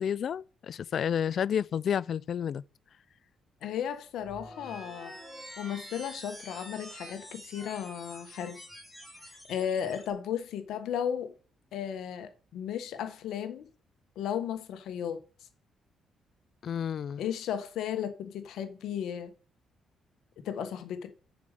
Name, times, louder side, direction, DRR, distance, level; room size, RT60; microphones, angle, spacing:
voice 1, 0.0-2.6 16.6-17.2, left 8 dB, 60° left, 0.3 m, -30 dB
voice 2, 3.6-5.1 5.6-8.6 9.3-11.3 11.7-13.7 14.1-15.2 17.2-19.3 20.4-21.1, left 9 dB, 80° left, 1.3 m, -35 dB
sound 1, 4.2-10.1, equal, ahead, 4.5 m, -47 dB
6.8 x 5.2 x 6.6 m
cardioid pair, 90°, 0 cm